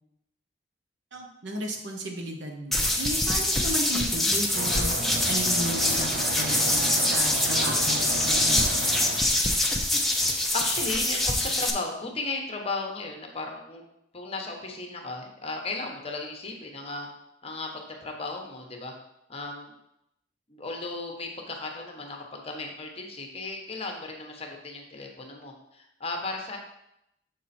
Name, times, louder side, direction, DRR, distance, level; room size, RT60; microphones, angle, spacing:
voice 1, 1.1-4.9 5.2-8.7, right 1 dB, 75° right, 2 dB, 1.1 m, -34 dB
sound 1, 2.7-11.7, left 1 dB, ahead, 0.7 m, -25 dB
sound 2, 4.5-9.3, right 2 dB, 55° right, 0.6 m, -34 dB
voice 2, 10.5-13.8 14.1-17.1 17.4-18.9 19.3-19.7 20.5-26.6, left 3 dB, 35° left, 2 dB, 1.1 m, -35 dB
6.8 x 4.5 x 4.3 m, 0.81 s
head